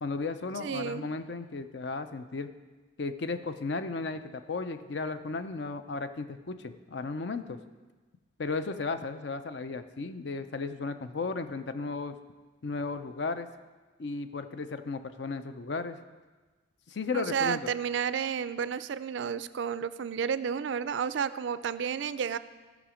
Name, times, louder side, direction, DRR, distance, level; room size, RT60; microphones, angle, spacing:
voice 1, 0.0-2.5 3.0-7.6 8.4-12.2 12.6-13.5 14.0-16.0 16.9-17.6, left 4 dB, 65° left, 10 dB, 0.5 m, -35 dB
voice 2, 0.6-1.1 17.1-22.4, right 7 dB, 70° right, 15 dB, 0.3 m, -31 dB
14.5 x 5.1 x 4.9 m, 1.3 s
head